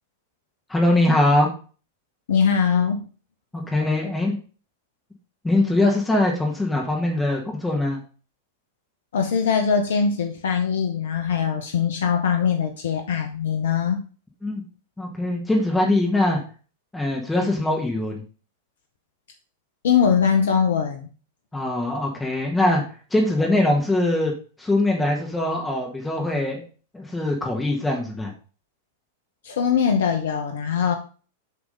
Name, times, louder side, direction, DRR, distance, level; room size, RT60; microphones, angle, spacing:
voice 1, 0.7-1.5 3.5-4.4 5.4-8.0 14.4-14.6 15.0-16.4 16.9-18.2 21.5-22.8 23.1-26.6 26.9-28.3, left 1 dB, 10° left, -1 dB, 1.6 m, -22 dB
voice 2, 2.3-3.1 9.1-14.0 19.8-21.1 29.4-30.9, left 6 dB, 65° left, 5 dB, 0.8 m, -21 dB
7.4 x 3.5 x 5.2 m, 0.38 s
figure-of-eight pair, 95°, 0 cm